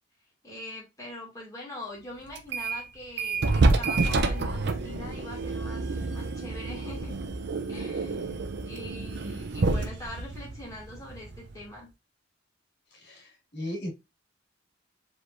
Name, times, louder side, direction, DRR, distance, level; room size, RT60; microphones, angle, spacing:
voice 1, 0.4-5.8 6.1-7.1 7.7-11.9, left 1 dB, 15° left, -3 dB, 2.3 m, -43 dB
sound 1, 2.4-2.9 3.2-11.6, right 3 dB, 60° right, 0.6 m, -28 dB
voice 2, 12.9-13.9, left 1 dB, 60° left, 0 dB, 2.0 m, -37 dB
4.7 x 3.6 x 2.5 m, 0.22 s
head